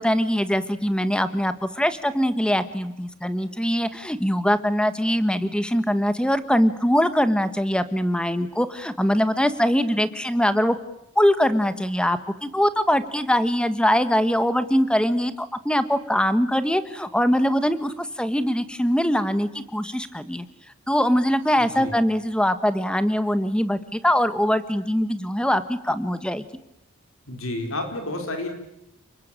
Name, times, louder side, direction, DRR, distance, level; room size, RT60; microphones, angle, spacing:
voice 1, 0.0-10.8 11.1-20.4 20.9-26.4, equal, 5° left, 12 dB, 1.3 m, -22 dB
voice 2, 21.6-21.9 27.3-28.5, left 2 dB, 70° left, 5 dB, 4.5 m, -30 dB
30.0 x 21.0 x 8.9 m, 0.83 s
head